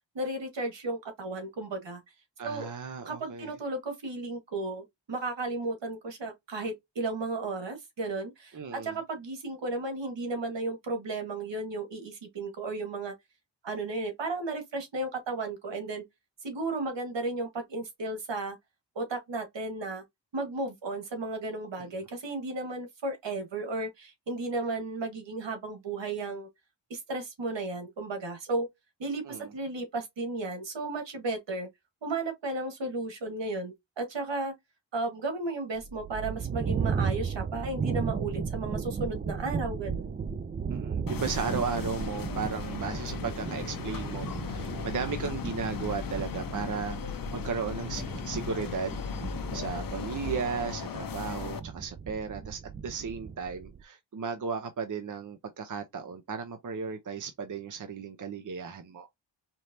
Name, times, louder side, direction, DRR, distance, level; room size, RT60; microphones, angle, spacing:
voice 1, 0.2-2.0 2.4-2.7 3.0-13.1 13.6-16.0 16.4-18.6 19.0-20.0 20.3-26.5 26.9-28.7 29.0-31.7 32.0-34.5 34.9-40.2, right 2 dB, 70° right, 1.9 m, -34 dB
voice 2, 2.4-3.5 8.5-9.0 21.8-22.1 29.2-29.5 40.7-49.0 49.5-59.1, right 5 dB, 45° right, 0.8 m, -35 dB
sound 1, 35.8-53.8, right 6 dB, 25° right, 0.4 m, -36 dB
sound 2, 41.1-51.6, left 6 dB, 50° left, 0.8 m, -37 dB
4.5 x 3.3 x 2.7 m
wide cardioid pair, 105°, 45 cm